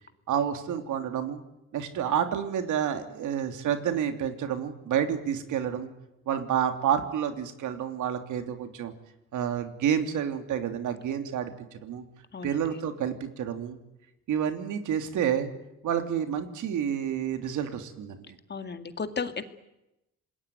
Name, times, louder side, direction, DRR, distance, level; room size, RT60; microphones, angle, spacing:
voice 1, 0.3-1.4 1.7-5.9 6.3-8.9 9.3-12.0 12.4-13.8 14.3-15.5 15.8-18.4, right 9 dB, 80° right, 7 dB, 3.2 m, -29 dB
voice 2, 18.5-19.4, left 5 dB, 35° left, 8 dB, 2.3 m, -33 dB
27.0 x 21.0 x 9.5 m, 0.90 s
cardioid pair, 90°, 30 cm